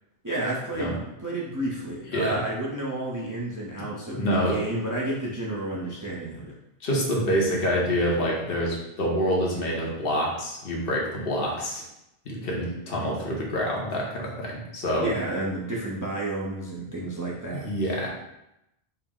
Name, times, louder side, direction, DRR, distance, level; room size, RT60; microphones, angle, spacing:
voice 1, 0.2-6.5 15.0-17.7, right 2 dB, 25° right, -5 dB, 0.4 m, -31 dB
voice 2, 4.1-4.6 6.8-11.8 12.3-15.0 17.5-18.1, equal, 65° left, -2 dB, 1.0 m, -26 dB
4.5 x 2.0 x 3.6 m, 0.86 s
omnidirectional pair, 1.1 m